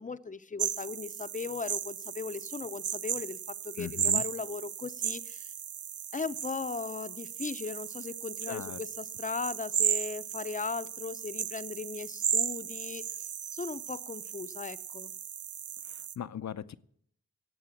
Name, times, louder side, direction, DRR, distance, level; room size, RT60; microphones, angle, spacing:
voice 1, 0.0-5.5 6.1-13.0 13.5-15.1, left 4 dB, 25° left, 13 dB, 0.6 m, -38 dB
sound 1, 0.6-16.1, right 9 dB, 90° right, 0.6 m, -35 dB
voice 2, 3.8-4.2 8.5-8.8 15.9-16.8, left 9 dB, 70° left, 14 dB, 0.7 m, -39 dB
17.5 x 7.9 x 7.2 m, 0.68 s
wide cardioid pair, 85°, 29 cm